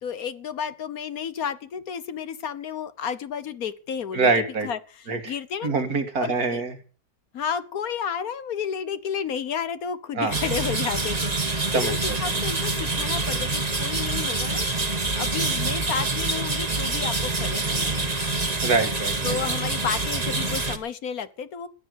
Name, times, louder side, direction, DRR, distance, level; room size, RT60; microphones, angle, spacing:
voice 1, 0.0-4.3 4.6-5.7 6.2-6.6 7.3-14.8 15.1-18.0 19.2-21.7, left 7 dB, 65° left, 14 dB, 1.4 m, -32 dB
voice 2, 4.1-4.7 5.1-5.3 5.6-6.8 10.1-10.3 11.7-12.4 18.6-19.4, right 4 dB, 65° right, 7 dB, 2.5 m, -25 dB
sound 1, 10.3-20.8, right 3 dB, 25° right, 1.6 m, -26 dB
16.5 x 10.0 x 6.5 m, 0.39 s
omnidirectional pair, 1.7 m